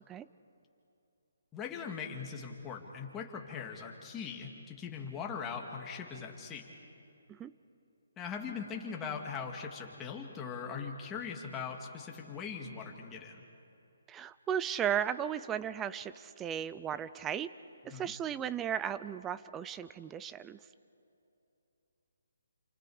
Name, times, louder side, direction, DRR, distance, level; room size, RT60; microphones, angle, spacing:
voice 1, 1.5-6.7 8.2-13.4 17.9-18.1, left 6 dB, 15° left, 1 dB, 2.2 m, -40 dB
voice 2, 14.1-17.5 17.8-20.6, right 9 dB, 10° right, 15 dB, 0.4 m, -35 dB
28.5 x 28.0 x 5.0 m, 2.8 s
hypercardioid pair, 160°, 0 cm